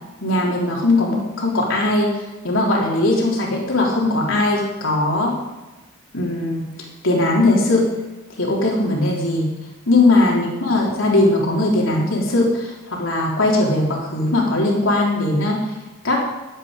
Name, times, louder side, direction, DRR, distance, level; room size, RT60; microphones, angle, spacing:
voice 1, 0.2-2.1 2.4-5.3 6.1-6.7 7.0-7.9 8.4-9.5 9.9-15.6 16.0-16.2, left 2 dB, 80° left, -2 dB, 3.7 m, -19 dB
15.5 x 11.0 x 5.3 m, 1.1 s
head